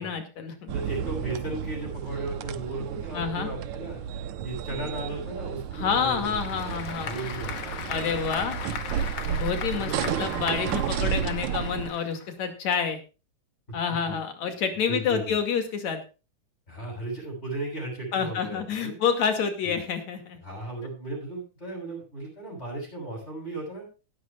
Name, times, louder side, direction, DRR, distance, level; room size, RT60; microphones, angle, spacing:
voice 1, 0.0-0.7 3.1-3.5 5.7-7.1 7.9-8.6 9.3-13.0 13.7-16.0 18.1-20.4, left 7 dB, 65° left, 7 dB, 3.6 m, -28 dB
voice 2, 0.7-4.0 4.4-7.9 8.4-8.6 9.7-10.1 11.0-11.3 13.7-13.8 14.0-14.2 14.9-15.4 16.7-18.9 19.6-19.8 20.4-23.8, right 2 dB, 20° left, -1 dB, 8.0 m, -36 dB
sound 1, 0.7-11.9, right 9 dB, 75° right, 2.3 m, -32 dB
Applause / Crowd, 5.9-12.5, left 7 dB, 50° left, 1.6 m, -38 dB
18.0 x 13.0 x 2.5 m, 0.31 s
omnidirectional pair, 3.5 m